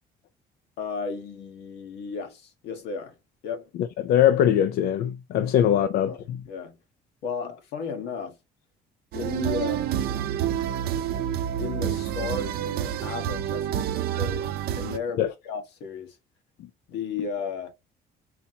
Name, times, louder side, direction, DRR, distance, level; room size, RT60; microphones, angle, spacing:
voice 1, 0.8-3.1 3.4-3.7 5.7-6.8 7.2-8.4 9.1-10.0 11.6-14.5 14.7-16.2 16.9-17.7, left 5 dB, 80° left, 1.2 m, -34 dB
voice 2, 4.0-6.1 15.2-15.3, left 10 dB, 65° left, 0.4 m, -21 dB
sound 1, 9.1-15.0, right 10 dB, 65° right, 0.5 m, -28 dB
4.2 x 2.7 x 2.8 m
cardioid pair, 110°, 17 cm